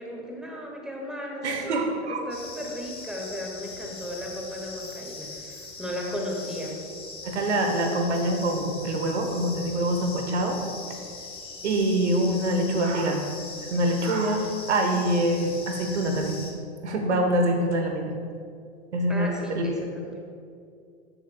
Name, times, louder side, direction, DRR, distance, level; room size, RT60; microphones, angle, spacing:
voice 1, 0.0-6.7 19.1-20.2, equal, ahead, -1 dB, 1.7 m, -35 dB
voice 2, 1.4-2.3 7.2-10.6 10.9-11.0 11.6-13.3 13.7-16.4 16.8-18.1 18.9-19.7, right 1 dB, 85° right, 4 dB, 1.2 m, -25 dB
sound 1, 2.3-16.5, left 3 dB, 15° left, 1.4 m, -41 dB
13.5 x 7.0 x 2.3 m, 2.4 s
hypercardioid pair, 100°, 33 cm